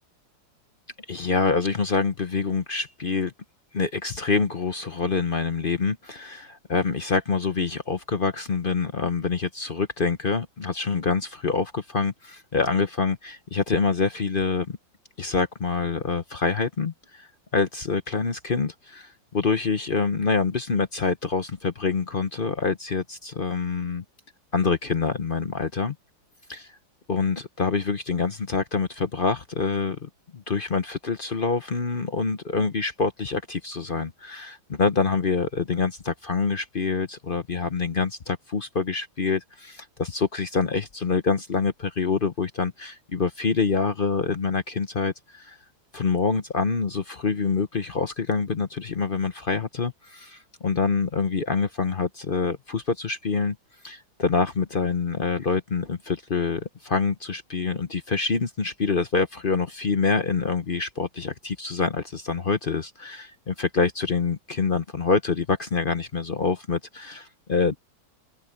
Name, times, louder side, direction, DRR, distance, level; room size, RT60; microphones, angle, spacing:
voice 1, 1.1-3.3 3.7-14.8 15.2-24.0 24.5-26.0 26.5-26.7 27.1-45.6 45.9-53.6 53.8-67.7, left 4 dB, 45° left, 0.7 m, -26 dB
omnidirectional pair, 2.1 m